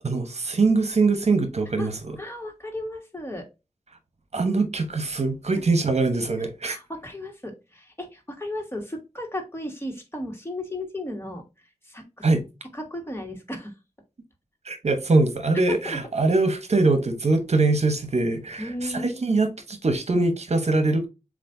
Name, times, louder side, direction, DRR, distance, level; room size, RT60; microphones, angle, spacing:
voice 1, 0.0-2.2 4.3-6.8 12.2-12.4 14.6-21.1, right 3 dB, 65° right, 1.0 m, -23 dB
voice 2, 2.2-3.5 6.6-11.4 11.8-12.2 12.7-13.7 15.7-16.0 18.6-19.2, left 1 dB, 20° left, 1.5 m, -35 dB
7.2 x 2.5 x 2.6 m
wide cardioid pair, 70°, 12 cm